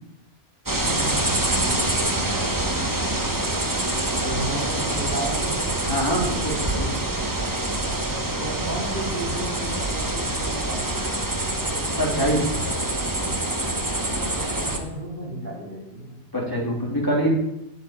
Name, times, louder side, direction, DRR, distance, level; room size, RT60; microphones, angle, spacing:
sound 1, 0.7-14.8, right 2 dB, 20° right, 1.2 m, -25 dB
voice 1, 0.8-1.5 4.2-5.7 8.4-11.0 14.4-16.2, right 1 dB, 50° right, -4 dB, 4.1 m, -33 dB
voice 2, 5.9-6.9 12.0-12.5 16.3-17.3, equal, 20° left, -2 dB, 3.0 m, -24 dB
8.3 x 7.3 x 8.5 m, 0.86 s
omnidirectional pair, 1.1 m